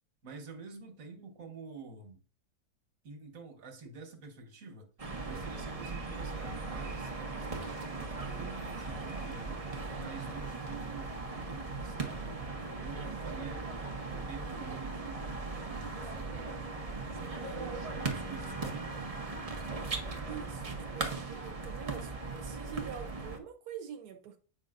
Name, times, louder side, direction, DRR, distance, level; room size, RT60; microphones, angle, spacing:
voice 1, 0.2-2.2 3.0-4.9 5.2-9.7 9.9-12.4 12.8-16.7 17.1-19.2, right 4 dB, 60° right, 1.7 m, -48 dB
sound 1, 5.0-23.4, right 3 dB, 30° right, 0.8 m, -38 dB
voice 2, 20.3-24.4, right 8 dB, 90° right, 1.2 m, -45 dB
8.6 x 5.3 x 2.5 m
omnidirectional pair, 1.6 m